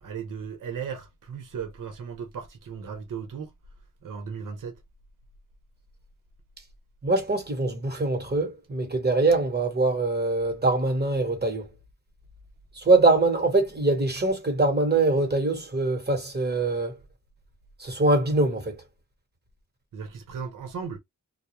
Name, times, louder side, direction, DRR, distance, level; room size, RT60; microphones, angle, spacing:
voice 1, 0.0-3.5 4.0-4.8 19.9-21.0, right 6 dB, 90° right, 0.8 m, -36 dB
voice 2, 7.0-11.7 12.8-16.9 17.8-18.8, right 2 dB, 30° right, 1.1 m, -23 dB
2.3 x 2.1 x 2.8 m
cardioid pair, 60°, 32 cm